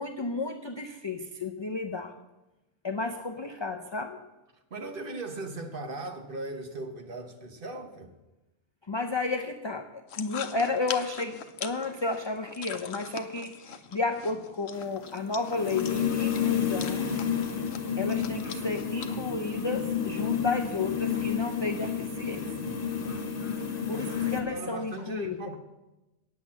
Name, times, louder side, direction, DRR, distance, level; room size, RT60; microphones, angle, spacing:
voice 1, 0.0-2.1 2.8-4.2 8.9-17.1 18.0-22.4 23.9-25.4, left 3 dB, 30° left, 0.5 m, -32 dB
voice 2, 4.7-8.1 23.8-25.6, right 2 dB, 50° right, 1.2 m, -38 dB
sound 1, 10.1-19.1, left 7 dB, 65° left, 1.0 m, -42 dB
sound 2, 14.8-24.4, left 7 dB, 50° left, 1.4 m, -30 dB
9.4 x 8.2 x 7.3 m
omnidirectional pair, 1.2 m